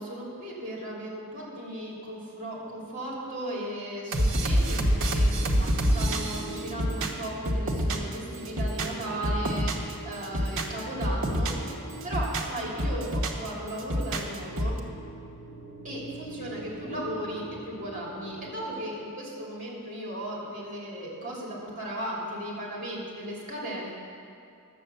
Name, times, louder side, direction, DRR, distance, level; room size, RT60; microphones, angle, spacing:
voice 1, 0.0-11.7 12.0-14.8 15.8-23.9, right 1 dB, 35° right, -4 dB, 2.9 m, -36 dB
sound 1, 4.1-8.2 8.5-9.9 10.2-11.7 12.0-13.5 13.8-14.8, equal, 60° right, 1.1 m, -27 dB
sound 2, 4.9-18.5, right 3 dB, 50° left, 1.7 m, -44 dB
11.5 x 7.7 x 6.9 m, 2.4 s
head